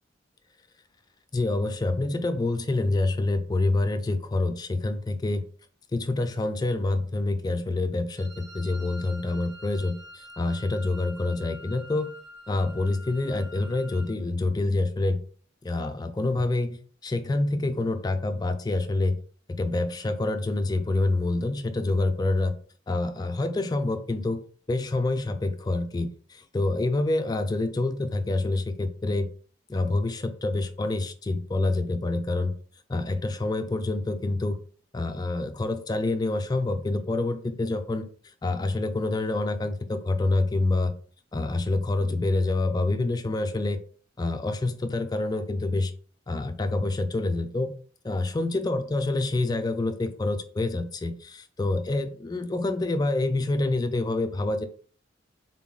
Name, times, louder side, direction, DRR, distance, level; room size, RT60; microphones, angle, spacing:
voice 1, 1.3-5.4 5.9-12.1 12.5-15.2 15.6-19.2 19.5-22.6 22.9-24.4 24.7-29.3 29.7-32.5 32.9-34.6 34.9-38.0 38.4-40.9 41.3-43.8 44.2-45.9 46.3-47.7 48.0-54.6, left 2 dB, 20° left, 0.3 m, -27 dB
Wind instrument woodwind instrument, 8.2-14.2, left 1 dB, 60° right, 1.2 m, -47 dB
3.8 x 2.2 x 3.7 m
head